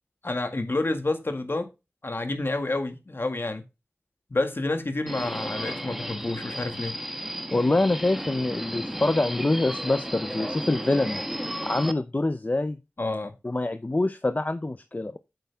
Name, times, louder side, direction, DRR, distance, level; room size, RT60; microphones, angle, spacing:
voice 1, 0.2-1.7 2.0-3.6 4.3-7.0 13.0-13.3, left 2 dB, 60° left, 1.9 m, -29 dB
Subway metro underground, 5.1-11.9, equal, 5° right, 1.0 m, -34 dB
voice 2, 7.5-11.2 11.6-12.8 13.4-15.2, left 2 dB, 40° left, 0.6 m, -25 dB
8.5 x 7.9 x 3.5 m
wide cardioid pair, 60°, 4 cm